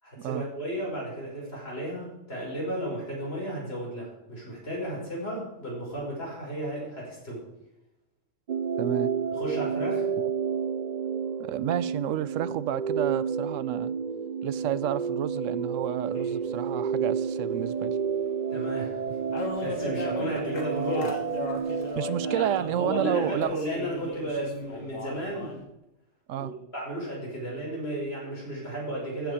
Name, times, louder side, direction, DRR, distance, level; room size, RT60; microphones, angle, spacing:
voice 1, 0.0-7.5 9.4-10.1 18.5-21.2 22.3-25.6 26.4-29.3, right 1 dB, 50° left, -4 dB, 5.7 m, -34 dB
sound 1, 8.5-23.4, right 6 dB, 55° right, 0.5 m, -30 dB
voice 2, 8.8-9.1 10.2-10.3 11.4-13.9 14.4-18.0 21.9-23.6 26.3-26.5, right 11 dB, 80° right, 17 dB, 0.9 m, -30 dB
sound 2, 16.1-16.5 18.3-18.4 18.6-18.7 19.0-19.1 19.3-22.8 23.4-25.6, left 3 dB, 85° left, 2.1 m, -37 dB
15.0 x 8.3 x 4.9 m, 0.89 s
omnidirectional pair, 1.3 m